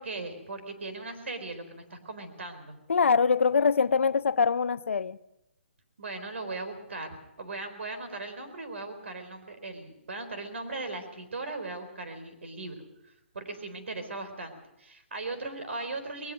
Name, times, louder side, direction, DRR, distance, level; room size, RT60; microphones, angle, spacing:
voice 1, 0.0-2.8 6.0-12.8 13.3-16.3, right 3 dB, 75° right, 4.2 m, -38 dB
voice 2, 2.9-5.2, left 5 dB, 85° left, 0.7 m, -23 dB
20.5 x 19.5 x 6.5 m
hypercardioid pair, 180°, 7 cm